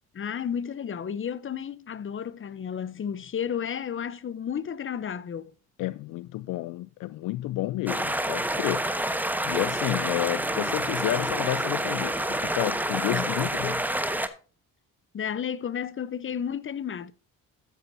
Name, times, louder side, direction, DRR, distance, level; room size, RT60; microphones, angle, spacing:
voice 1, 0.1-5.5 13.1-13.4 15.1-17.1, left 8 dB, 35° left, 0.8 m, -32 dB
voice 2, 5.8-8.8 9.4-13.9, left 17 dB, 65° left, 0.5 m, -30 dB
sound 1, 7.9-14.3, right 1 dB, 5° right, 1.1 m, -28 dB
14.0 x 8.0 x 2.7 m
supercardioid pair, 75°, 35 cm